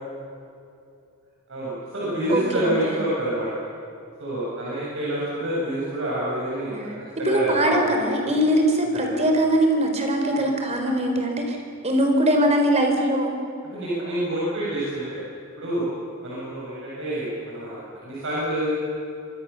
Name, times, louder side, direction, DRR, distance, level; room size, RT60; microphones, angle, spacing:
voice 1, 1.5-3.5 4.2-6.7 7.2-7.9 8.3-8.4 8.9-9.3 10.3-10.4 13.7-15.2 15.6-15.9 16.2-18.8, right 1 dB, 60° right, -7 dB, 7.8 m, -27 dB
voice 2, 2.3-3.0 6.7-7.0 7.2-11.6 11.8-13.4, right 1 dB, 30° right, 3 dB, 4.3 m, -21 dB
26.5 x 24.0 x 7.2 m, 2.5 s
head